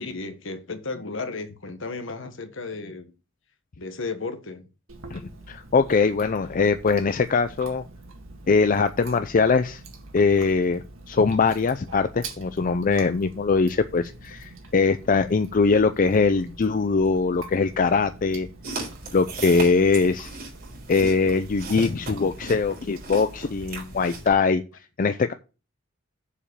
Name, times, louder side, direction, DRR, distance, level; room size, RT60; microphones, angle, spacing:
voice 1, 0.0-3.1 3.8-4.7, left 3 dB, 65° left, 1.3 m, -34 dB
Chewing mastication, 4.9-24.3, right 2 dB, 85° right, 1.9 m, -44 dB
voice 2, 5.5-7.8 8.5-9.8 10.1-18.5 19.1-20.3 20.9-24.6 25.0-25.3, left 4 dB, 45° left, 0.5 m, -22 dB
sound 1, 18.6-24.3, right 3 dB, 50° right, 3.7 m, -37 dB
7.1 x 5.0 x 6.7 m
head